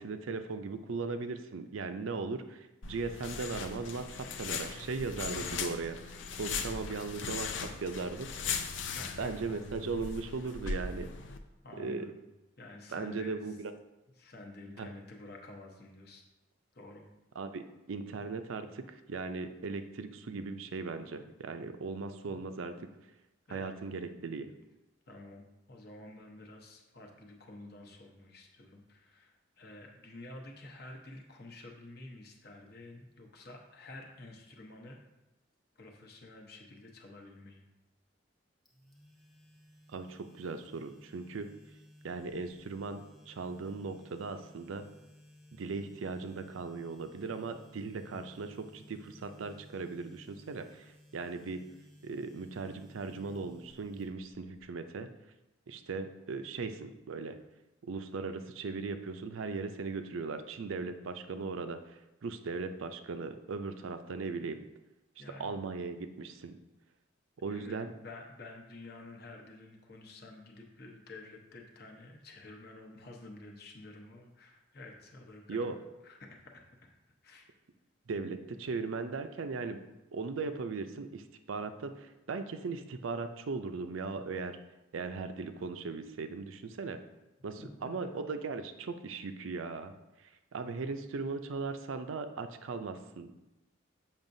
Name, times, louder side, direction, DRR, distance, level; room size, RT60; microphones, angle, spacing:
voice 1, 0.0-4.1 4.4-6.0 6.4-7.5 7.8-8.3 9.2-11.1 11.8-12.1 12.9-13.7 14.8-14.9 17.4-18.8 19.1-22.9 23.5-24.5 39.9-41.5 42.0-44.8 45.5-51.6 52.0-55.1 55.7-57.4 57.8-64.6 65.4-66.6 67.4-67.9 75.5-75.8 78.1-79.8 80.1-84.6 84.9-87.0 87.4-89.9 90.5-93.4, right 4 dB, 80° right, 9 dB, 0.5 m, -38 dB
sound 1, 2.8-11.4, left 5 dB, 70° left, 0.5 m, -39 dB
voice 2, 8.9-9.6 11.6-12.2 12.6-13.6 14.2-16.2 16.7-17.1 22.3-22.4 23.5-23.7 25.1-35.0 35.8-37.7 65.2-65.6 67.5-75.7 76.0-76.9 77.2-77.5 87.6-88.1, left 2 dB, 50° left, 2 dB, 0.9 m, -50 dB
sound 2, 38.7-54.6, left 1 dB, ahead, 0.8 m, -58 dB
7.2 x 5.6 x 2.6 m, 0.99 s
head